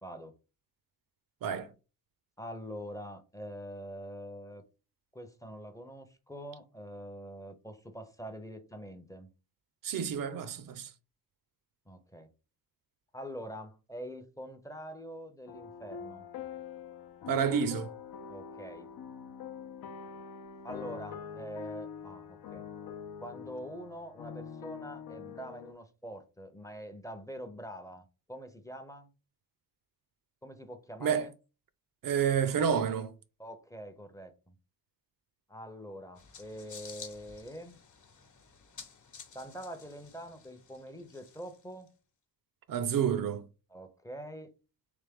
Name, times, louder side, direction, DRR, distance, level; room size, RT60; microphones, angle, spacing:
voice 1, 0.0-0.3 2.4-4.6 5.1-9.3 11.9-12.3 13.1-16.3 18.3-18.9 20.6-22.7 23.2-29.1 30.4-31.3 33.4-34.6 35.5-37.8 39.3-41.9 43.7-44.5, equal, 10° left, 0.5 m, -44 dB
voice 2, 9.8-10.9 17.3-17.9 31.0-31.3 32.0-33.1 42.7-43.4, right 7 dB, 65° right, 0.5 m, -29 dB
sound 1, 15.5-25.7, left 7 dB, 75° left, 0.6 m, -44 dB
sound 2, 36.2-41.9, left 5 dB, 55° left, 1.0 m, -52 dB
3.4 x 3.3 x 3.5 m
wide cardioid pair, 125°, 37 cm